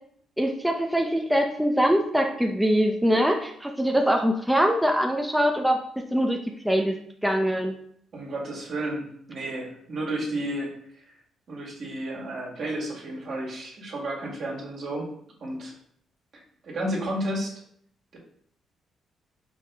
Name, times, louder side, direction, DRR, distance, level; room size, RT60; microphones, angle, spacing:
voice 1, 0.4-5.8 6.1-6.4 6.6-7.0 7.2-7.7, equal, 5° right, 2 dB, 0.5 m, -23 dB
voice 2, 8.1-9.0 9.3-10.7 11.5-15.1 15.4-15.7 16.6-17.5, right 1 dB, 60° right, -3 dB, 1.5 m, -31 dB
4.8 x 2.9 x 3.4 m, 0.66 s
cardioid pair, 90°, 0 cm